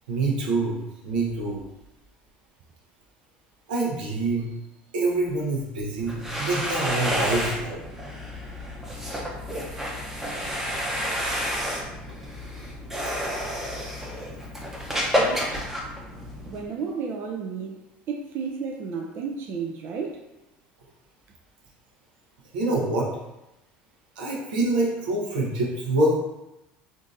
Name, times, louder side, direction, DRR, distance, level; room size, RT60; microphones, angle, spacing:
voice 1, 0.1-0.8 1.0-1.6 3.7-4.5 4.9-7.8 22.5-23.1 24.2-26.1, right 2 dB, 85° right, -3 dB, 0.8 m, -25 dB
sound 1, 6.0-16.6, equal, 10° right, 0.7 m, -30 dB
voice 2, 15.2-15.6 16.5-17.8 18.1-20.2, right 5 dB, 50° right, 1 dB, 0.4 m, -32 dB
3.7 x 2.6 x 2.5 m, 0.94 s
hypercardioid pair, 80°, 5 cm